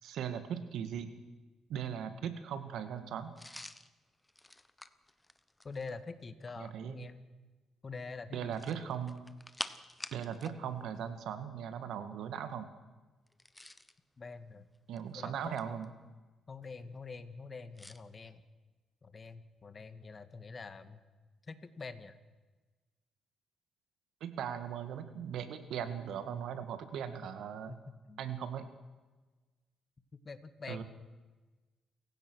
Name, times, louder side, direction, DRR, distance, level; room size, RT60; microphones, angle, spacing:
voice 1, 0.0-1.1 1.7-3.3 6.6-7.1 8.3-9.3 10.1-12.7 14.9-15.9 24.2-27.7 28.2-28.7 30.7-30.8, right 8 dB, 75° right, 10 dB, 2.0 m, -39 dB
sound 1, 3.4-6.0 8.4-10.6 10.9-11.0 13.3-14.0 14.7-15.9 17.8-18.0, left 1 dB, 10° left, 1.1 m, -47 dB
voice 2, 5.6-7.2 7.8-8.6 14.2-14.7 15.1-15.8 16.5-18.4 19.0-21.0 21.4-22.1 27.2-27.3 27.7-27.8 28.1-28.2 30.2-30.8, left 4 dB, 35° left, 11 dB, 1.8 m, -46 dB
28.5 x 16.0 x 6.4 m, 1.3 s
cardioid pair, 90°, 0 cm